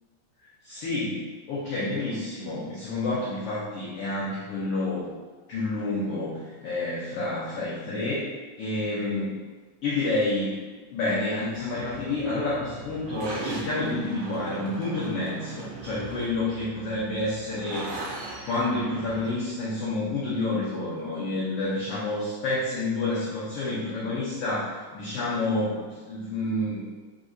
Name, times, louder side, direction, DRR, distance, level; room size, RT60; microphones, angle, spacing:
voice 1, 0.6-5.1 5.5-9.4 9.8-10.6 10.9-17.9 18.4-26.9, left 2 dB, 85° left, -8 dB, 1.3 m, -29 dB
sound 1, 11.5-19.3, right 3 dB, 80° right, 2.4 m, -39 dB
4.5 x 3.9 x 2.6 m, 1.3 s
omnidirectional pair, 3.7 m